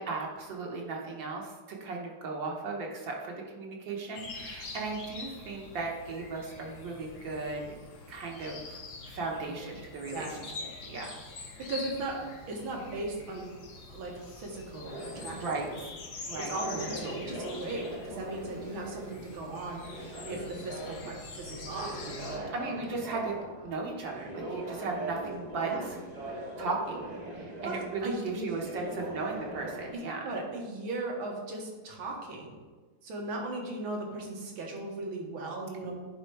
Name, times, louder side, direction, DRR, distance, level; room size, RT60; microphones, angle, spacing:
voice 1, 0.0-7.7 8.1-8.8 9.1-10.5 10.9-11.2 15.3-15.9 16.3-16.6 22.5-26.0 26.3-30.2, right 3 dB, 70° right, -1 dB, 1.7 m, -36 dB
sound 1, 4.2-22.4, left 3 dB, 55° left, 1.4 m, -45 dB
voice 2, 11.7-13.4 13.9-15.8 16.1-22.8 25.6-25.9 27.6-27.7 28.0-28.4 30.2-32.6 33.0-35.9, right 2 dB, 85° right, 0 dB, 2.1 m, -38 dB
sound 2, 14.8-29.9, right 1 dB, 30° right, 0.9 m, -41 dB
9.9 x 3.6 x 4.7 m, 1.3 s
omnidirectional pair, 2.2 m